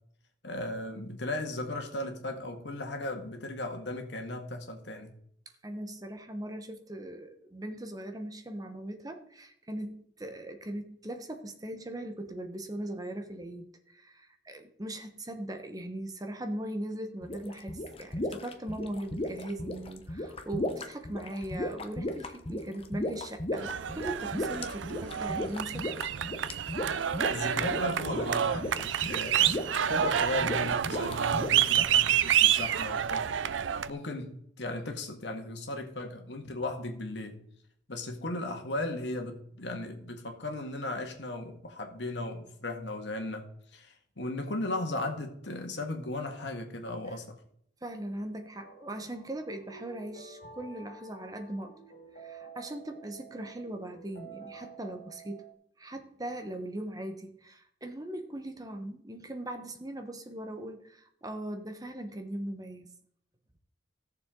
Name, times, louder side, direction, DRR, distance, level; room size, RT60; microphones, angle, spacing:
voice 1, 0.4-5.1 27.3-29.6 29.9-33.3 33.9-37.4 37.9-47.3, left 2 dB, 70° left, 1.9 m, -36 dB
voice 2, 5.6-25.9 47.8-51.8 52.1-55.5 55.8-62.9, right 1 dB, 20° right, 1.1 m, -39 dB
sound 1, 17.2-31.9, left 1 dB, 30° left, 1.0 m, -36 dB
sound 2, 23.6-33.9, right 9 dB, 90° right, 0.5 m, -28 dB
sound 3, 48.6-55.5, right 4 dB, 50° left, 2.2 m, -50 dB
16.5 x 7.0 x 3.8 m
head